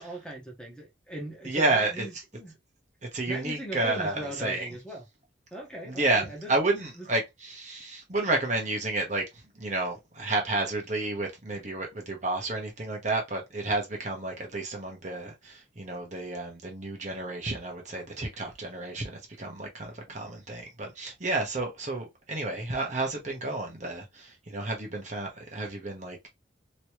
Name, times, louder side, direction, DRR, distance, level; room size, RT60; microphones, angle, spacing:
voice 1, 0.0-2.5 3.3-5.0 5.5-6.5 7.0-7.1, right 1 dB, 5° left, 1.0 m, -39 dB
voice 2, 1.4-2.1 3.0-4.7 5.8-26.3, right 2 dB, 40° right, 1.0 m, -31 dB
3.1 x 3.0 x 2.9 m
head